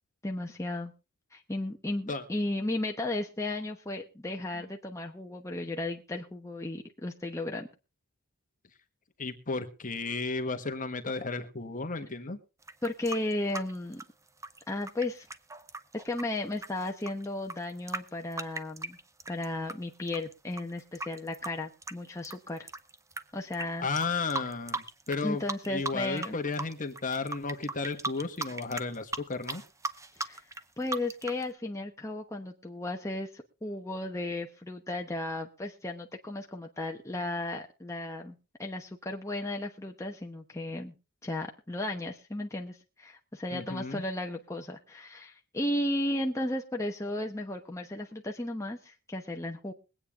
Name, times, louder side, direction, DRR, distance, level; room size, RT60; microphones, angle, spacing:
voice 1, 0.2-0.9 1.3-7.7 12.8-14.0 14.7-15.3 15.9-19.0 19.3-22.7 23.3-23.9 25.2-26.4 30.1-30.4 30.8-40.9 41.2-49.7, left 1 dB, 15° left, 1 dB, 1.0 m, -34 dB
voice 2, 9.2-12.4 23.8-29.6 43.5-44.0, left 4 dB, 35° left, 7 dB, 1.4 m, -34 dB
sound 1, 12.6-19.7 20.1-23.2 23.5-23.7 24.0-25.2 25.5-26.3 26.5-31.4, right 3 dB, 15° right, 0.7 m, -37 dB
22.5 x 8.8 x 3.7 m, 0.31 s
head